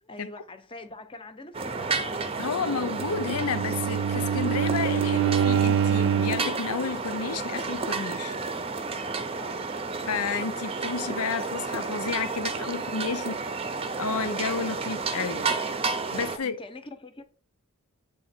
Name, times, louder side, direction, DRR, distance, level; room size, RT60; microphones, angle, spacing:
voice 1, 0.0-2.7 9.3-9.6 12.6-12.9 16.3-17.2, left 2 dB, 25° left, 0.8 m, -45 dB
sound 1, 1.5-16.4, right 4 dB, 25° right, 0.6 m, -31 dB
voice 2, 2.4-8.4 10.0-13.4 14.0-15.5 16.1-16.6, left 5 dB, 90° left, 0.6 m, -31 dB
Bowed string instrument, 2.9-6.6, right 7 dB, 60° right, 0.3 m, -25 dB
7.9 x 3.8 x 4.3 m
head